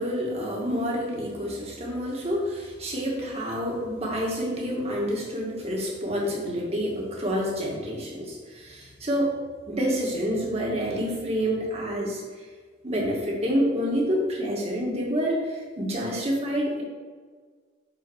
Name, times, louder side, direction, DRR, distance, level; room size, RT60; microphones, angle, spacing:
voice 1, 0.0-9.4 9.7-12.2 12.8-16.8, equal, 35° right, -2 dB, 1.8 m, -28 dB
5.8 x 5.7 x 6.3 m, 1.5 s
head